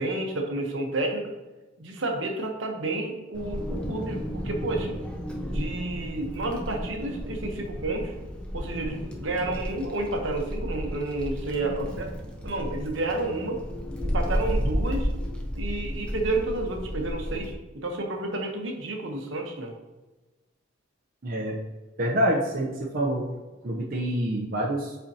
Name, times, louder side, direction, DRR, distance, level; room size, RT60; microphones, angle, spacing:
voice 1, 0.0-1.3 1.8-5.0 5.4-8.1 8.5-12.1 12.4-13.6 14.0-15.1 15.5-19.7, right 2 dB, 70° right, 2 dB, 1.0 m, -30 dB
Wind, 3.3-17.5, equal, 5° left, 0.6 m, -32 dB
voice 2, 21.2-21.6 22.0-23.3 23.6-25.0, right 1 dB, 45° right, -3 dB, 0.7 m, -26 dB
7.9 x 4.4 x 2.8 m, 1.2 s
head